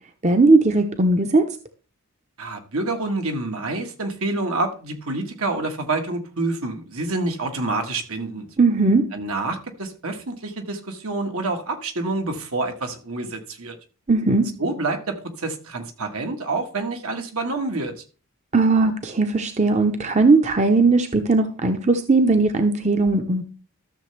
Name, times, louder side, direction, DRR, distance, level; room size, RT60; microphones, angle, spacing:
voice 1, 0.2-1.5 8.6-9.1 14.1-14.5 18.5-23.4, right 3 dB, 30° right, 0.8 m, -18 dB
voice 2, 2.4-8.5 9.1-13.8 14.6-18.0, right 2 dB, 75° right, 1.6 m, -27 dB
13.0 x 6.8 x 3.3 m
head